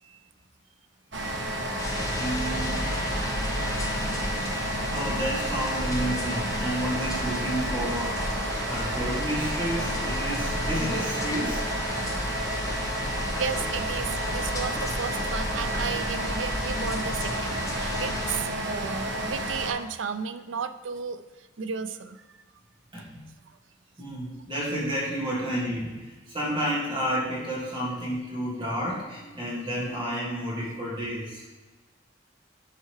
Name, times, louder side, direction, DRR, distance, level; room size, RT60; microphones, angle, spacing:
sound 1, 1.1-19.7, right 1 dB, 70° right, 1.0 m, -31 dB
sound 2, 1.8-18.4, left 1 dB, 20° left, 0.8 m, -33 dB
voice 1, 2.1-2.8 4.5-4.6 4.9-8.2 8.6-11.7 22.9-23.2 24.0-31.4, equal, 25° right, -6 dB, 1.9 m, -31 dB
voice 2, 13.4-21.2 21.6-22.2, right 6 dB, 90° right, 11 dB, 0.5 m, -33 dB
10.5 x 5.5 x 3.2 m, 1.2 s
head